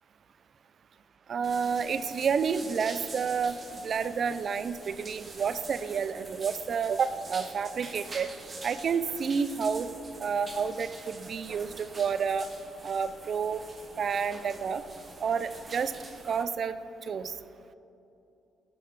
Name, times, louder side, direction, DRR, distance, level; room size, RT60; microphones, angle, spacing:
voice 1, 1.3-3.6 3.8-8.3 8.6-9.9 10.2-12.5 12.8-13.6 14.0-14.8 15.2-15.9 16.2-16.7 17.0-17.3, right 6 dB, 50° right, 13 dB, 0.3 m, -29 dB
sound 1, 1.4-16.4, right 3 dB, 35° right, 0.8 m, -46 dB
11.0 x 3.8 x 4.6 m, 2.9 s
cardioid pair, 90°, 0 cm